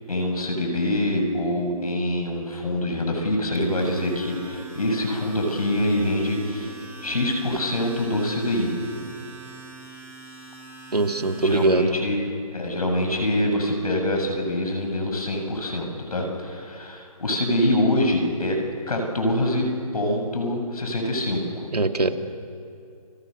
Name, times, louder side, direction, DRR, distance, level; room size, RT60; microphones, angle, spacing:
voice 1, 0.1-6.7 7.0-8.7 11.4-12.3 12.5-19.7 19.9-21.7, left 1 dB, 75° left, 3 dB, 7.8 m, -25 dB
Domestic sounds home sounds, 3.5-11.7, right 3 dB, 10° right, 5.6 m, -43 dB
voice 2, 10.9-12.0 21.7-22.1, right 3 dB, 90° right, 6 dB, 2.5 m, -21 dB
30.0 x 25.5 x 6.8 m, 2.5 s
figure-of-eight pair, 160°, 19 cm